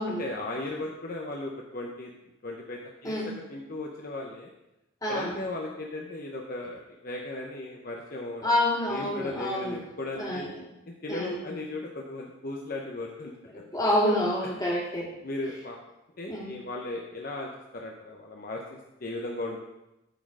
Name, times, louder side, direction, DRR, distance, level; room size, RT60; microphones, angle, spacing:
voice 1, 0.2-2.1 2.4-4.5 5.1-8.5 8.9-10.5 10.9-13.6 15.2-15.8 16.2-19.6, left 2 dB, 45° left, 0 dB, 0.8 m, -36 dB
voice 2, 5.0-5.3 8.4-9.8 10.2-10.5 11.1-11.4 13.7-15.1 16.3-16.5, left 1 dB, 15° left, -4 dB, 2.0 m, -27 dB
12.5 x 4.4 x 4.7 m, 0.94 s
head